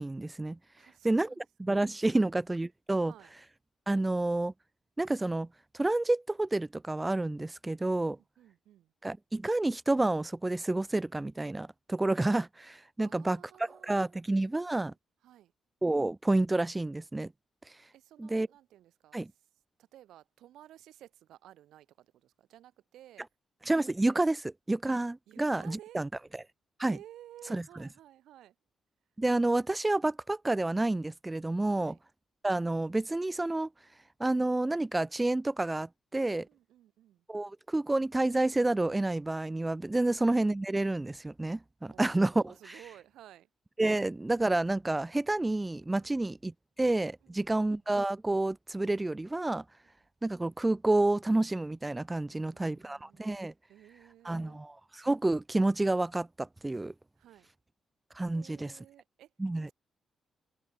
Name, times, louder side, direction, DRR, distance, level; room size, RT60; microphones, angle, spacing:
voice 1, 0.0-0.6 1.0-3.1 3.9-4.5 5.0-5.5 5.7-8.2 9.0-14.9 15.8-17.3 17.7-17.8 18.2-18.5 19.1-19.3 23.7-26.4 26.8-27.0 27.5-27.9 29.2-32.0 32.4-33.7 34.2-36.5 37.3-42.8 43.8-49.6 50.2-53.5 54.2-56.9 58.1-58.7 59.4-59.7, right 2 dB, 15° right, 0.4 m, -29 dB
voice 2, 0.8-1.4 2.1-2.3 3.1-3.3 8.0-8.9 13.0-14.3 14.6-14.8 15.2-15.5 17.9-19.2 19.9-23.2 24.9-25.0 25.3-26.0 26.8-28.5 31.6-32.0 36.4-37.2 40.0-40.1 41.9-43.5 46.0-46.2 47.2-47.6 52.3-53.4 53.7-54.6 57.2-57.5 58.3-59.7, right 12 dB, 85° right, 3.0 m, -55 dB
cardioid pair, 85°, 0 cm